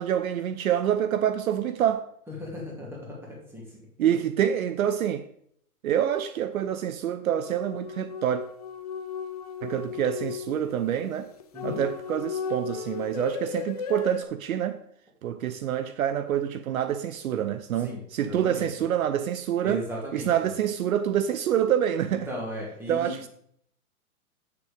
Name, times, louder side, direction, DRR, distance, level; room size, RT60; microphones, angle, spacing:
voice 1, 0.0-2.0 4.0-5.3 5.8-8.4 9.6-11.3 11.6-14.8 15.2-19.8 20.1-22.3 22.9-23.3, right 10 dB, 65° right, 0.7 m, -26 dB
voice 2, 2.3-2.9 3.5-3.6 4.0-4.1 11.5-11.8 17.8-18.7 19.6-20.3 22.1-23.1, left 1 dB, 5° right, 2.6 m, -36 dB
sound 1, 7.3-14.2, left 7 dB, 30° left, 0.4 m, -36 dB
7.6 x 6.8 x 5.0 m
hypercardioid pair, 135°, 45 cm